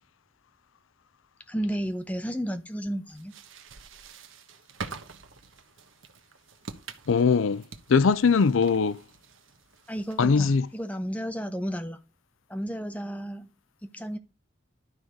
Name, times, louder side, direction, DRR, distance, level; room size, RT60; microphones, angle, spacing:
voice 1, 1.5-3.3 9.9-12.0 12.5-13.5 13.8-14.2, equal, 5° left, 0.8 m, -32 dB
sound 1, 3.1-10.4, right 4 dB, 75° right, 1.1 m, -45 dB
voice 2, 7.1-7.6 7.9-9.0 10.2-10.7, left 5 dB, 75° left, 0.5 m, -21 dB
12.0 x 4.7 x 5.1 m
head